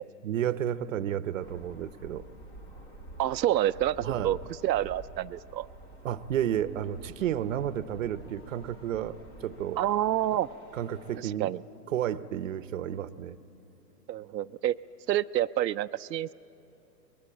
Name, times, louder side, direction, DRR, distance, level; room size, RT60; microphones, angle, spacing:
voice 1, 0.2-2.3 4.0-4.3 6.0-9.8 10.7-11.5 11.9-13.4, right 10 dB, 50° right, 14 dB, 0.8 m, -32 dB
sound 1, 1.4-11.2, right 1 dB, 10° left, 0.8 m, -49 dB
voice 2, 3.2-4.4 4.6-5.7 9.8-10.5 11.2-11.6 14.1-14.8 15.1-16.3, right 13 dB, 90° right, 10 dB, 0.6 m, -28 dB
24.5 x 21.0 x 9.0 m, 2.9 s
hypercardioid pair, 155°, 50 cm